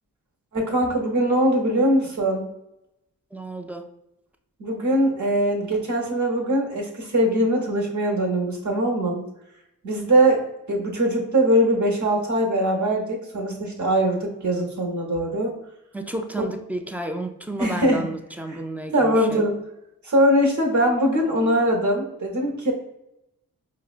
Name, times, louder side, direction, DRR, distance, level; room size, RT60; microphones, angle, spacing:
voice 1, 0.5-2.5 4.6-9.2 9.8-15.5 17.6-18.0 18.5-18.6 18.9-19.6 20.0-22.7, right 1 dB, 50° right, 0 dB, 1.0 m, -22 dB
voice 2, 3.3-3.9 15.9-19.5, right 1 dB, 5° right, 5 dB, 0.4 m, -32 dB
4.7 x 2.1 x 2.4 m, 0.86 s
cardioid pair, 50°, 37 cm